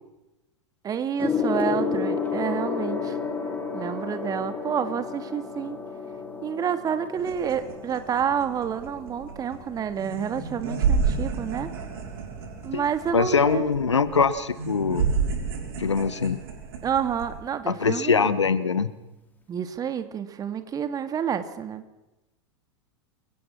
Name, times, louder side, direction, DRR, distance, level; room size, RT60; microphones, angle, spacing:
voice 1, 0.8-3.2 3.7-5.8 6.4-11.7 12.6-13.6 16.8-18.4 19.5-21.8, right 8 dB, 25° right, 9 dB, 2.4 m, -29 dB
Gong, 1.2-11.0 11.9-12.2, left 5 dB, 10° left, 4.9 m, -32 dB
sound 1, 7.1-17.4, right 5 dB, 55° right, 6.2 m, -31 dB
voice 2, 13.1-15.1 15.8-16.4 17.7-18.9, left 5 dB, 80° left, 14 dB, 1.5 m, -23 dB
29.0 x 24.0 x 6.0 m, 1.0 s
figure-of-eight pair, 90°, 15 cm